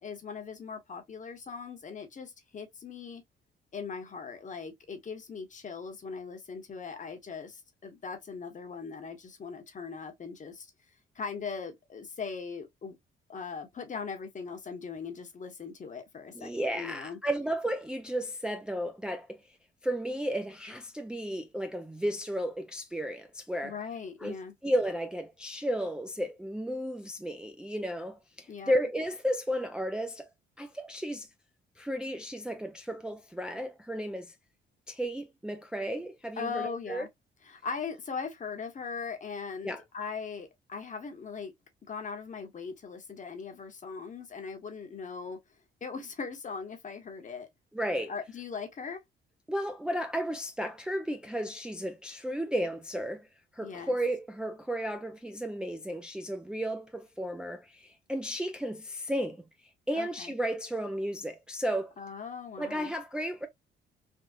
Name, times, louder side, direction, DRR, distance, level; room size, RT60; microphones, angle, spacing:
voice 1, 0.0-3.2 3.7-10.7 11.1-13.0 13.3-17.2 23.6-24.5 28.5-28.7 36.4-37.1 37.4-41.5 41.9-45.4 45.8-47.5 48.1-49.0 53.6-54.0 59.9-60.3 62.0-62.9, left 5 dB, 40° left, 1.0 m, -40 dB
voice 2, 16.3-19.4 19.8-23.8 24.2-24.4 24.6-30.3 30.6-31.3 31.8-34.3 34.9-37.1 39.6-39.8 47.7-48.1 49.5-53.3 53.5-59.4 59.9-61.9 62.6-63.5, equal, 5° right, 0.4 m, -33 dB
3.5 x 2.3 x 2.4 m
cardioid pair, 90°, 20 cm